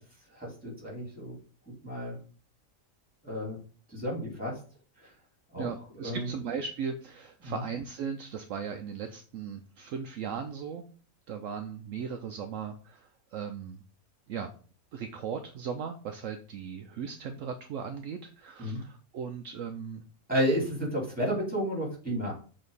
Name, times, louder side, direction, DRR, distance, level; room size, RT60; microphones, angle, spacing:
voice 1, 0.3-1.3 1.8-2.2 3.2-3.6 3.9-4.5 5.5-5.7 6.0-6.3 7.4-7.6 18.6-18.8 20.3-22.3, equal, 5° right, -4 dB, 3.1 m, -31 dB
voice 2, 5.6-10.8 11.3-13.8 14.3-14.5 14.9-20.0, right 6 dB, 70° right, 6 dB, 0.9 m, -37 dB
7.0 x 3.8 x 4.1 m, 0.41 s
omnidirectional pair, 1.5 m